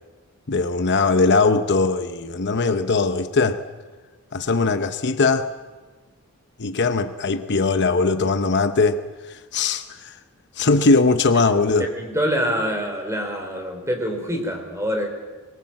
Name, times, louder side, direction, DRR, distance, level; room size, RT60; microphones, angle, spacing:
voice 1, 0.5-3.6 4.3-5.5 6.6-10.2 10.5-11.9, left 3 dB, 50° left, 0.8 m, -20 dB
voice 2, 11.8-15.1, equal, 15° right, 3.8 m, -25 dB
24.0 x 22.0 x 7.7 m
head